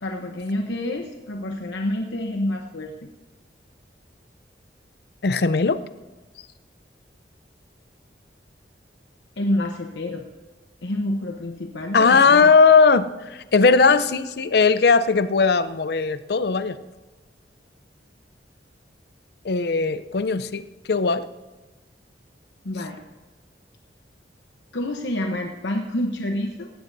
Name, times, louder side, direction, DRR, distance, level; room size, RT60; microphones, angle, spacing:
voice 1, 0.0-2.9 9.4-10.2 10.8-12.5 22.6-23.0 24.7-26.7, left 1 dB, 85° left, 3 dB, 1.0 m, -28 dB
voice 2, 5.2-5.8 11.9-16.8 19.4-21.3, left 4 dB, 60° left, 13 dB, 0.6 m, -18 dB
17.0 x 15.5 x 2.7 m, 1.2 s
head